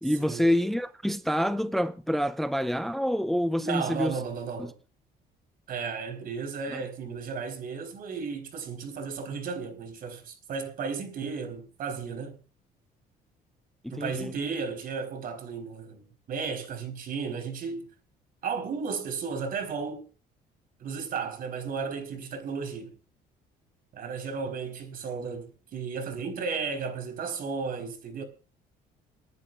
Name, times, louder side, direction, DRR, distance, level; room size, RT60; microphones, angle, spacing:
voice 1, 0.0-4.2 4.6-4.7 6.7-6.8 13.8-14.3, equal, ahead, 0.6 m, -27 dB
voice 2, 3.6-4.7 5.7-12.4 13.9-17.9 18.4-20.0 20.8-22.9 23.9-28.2, right 5 dB, 60° right, 4.5 m, -34 dB
29.5 x 10.5 x 2.5 m
cardioid pair, 110°, 17 cm